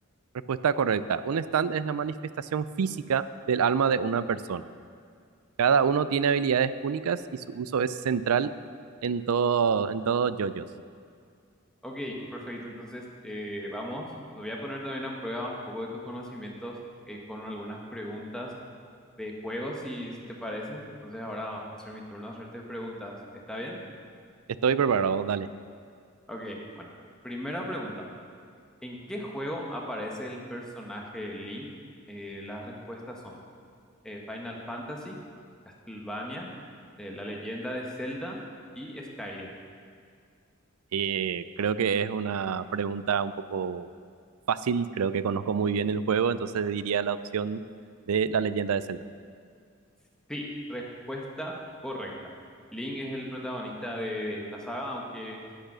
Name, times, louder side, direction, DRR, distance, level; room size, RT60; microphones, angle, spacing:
voice 1, 0.5-4.7 5.6-8.5 9.0-10.6 24.6-25.5 40.9-43.9 44.5-47.6 48.1-49.0, right 6 dB, 90° right, 15 dB, 0.4 m, -26 dB
voice 2, 11.8-14.1 14.3-16.7 17.1-18.5 19.2-20.1 20.4-23.1 23.5-23.8 26.3-26.9 27.2-27.9 28.8-31.7 32.1-33.3 34.0-35.2 35.9-36.5 37.0-38.4 38.7-39.5 50.3-51.5 51.8-52.3 52.7-55.4, equal, 5° left, -2 dB, 1.2 m, -36 dB
9.9 x 9.1 x 6.1 m, 2.2 s
head